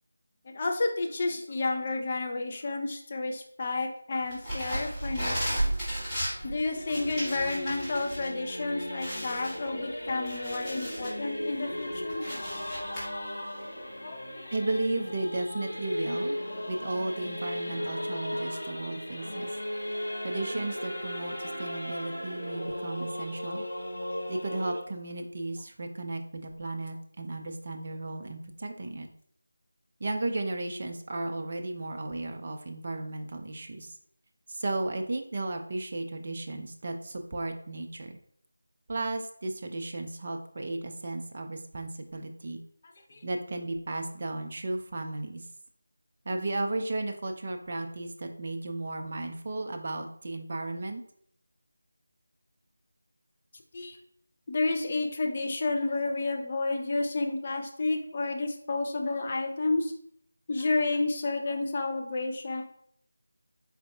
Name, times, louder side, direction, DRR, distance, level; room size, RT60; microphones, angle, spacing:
voice 1, 0.5-5.7 6.4-12.4 14.0-14.4 43.1-43.3 53.7-54.0 54.5-59.9 60.5-62.6, left 3 dB, 30° left, 2 dB, 0.4 m, -31 dB
sound 1, 4.3-8.3 8.6-8.7 9.0-11.2 11.6-13.0, right 1 dB, 5° left, 1.2 m, -34 dB
Singing / Musical instrument, 5.5-24.8, left 1 dB, 60° left, 0.8 m, -37 dB
voice 2, 14.5-16.4 16.7-19.5 20.2-23.6 24.3-29.1 30.0-34.0 34.5-38.1 38.9-42.6 43.2-45.4 46.3-51.0, right 2 dB, 35° right, 5 dB, 0.4 m, -34 dB
4.2 x 3.9 x 2.3 m, 0.68 s
figure-of-eight pair, 165°, 0 cm